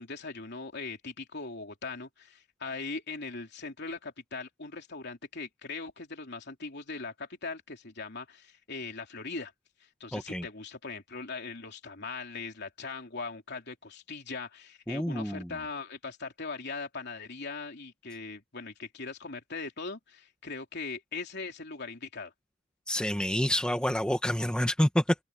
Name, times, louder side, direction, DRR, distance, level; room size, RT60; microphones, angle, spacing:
voice 1, 0.0-9.5 9.8-22.3, left 4 dB, 55° left, 3.4 m, -40 dB
voice 2, 10.1-10.4 14.9-15.5 22.9-25.1, equal, 5° left, 1.3 m, -28 dB
head